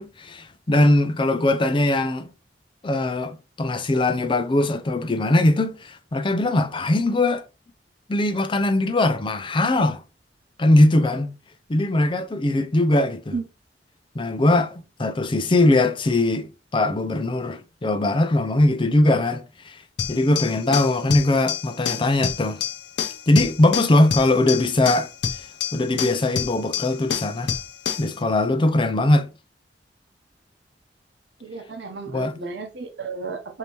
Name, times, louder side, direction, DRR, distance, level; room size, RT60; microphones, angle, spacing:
voice 1, 0.0-2.3 2.8-7.4 8.1-10.0 10.6-11.3 11.7-13.3 14.1-19.8 20.1-22.6 23.3-25.1 25.7-27.6 28.0-29.3 32.1-32.3, left 2 dB, 30° left, 0.5 m, -21 dB
sound 1, 20.0-28.1, left 7 dB, 80° left, 0.6 m, -29 dB
voice 2, 31.4-33.6, right 4 dB, 75° right, 0.8 m, -33 dB
5.2 x 2.8 x 3.0 m
head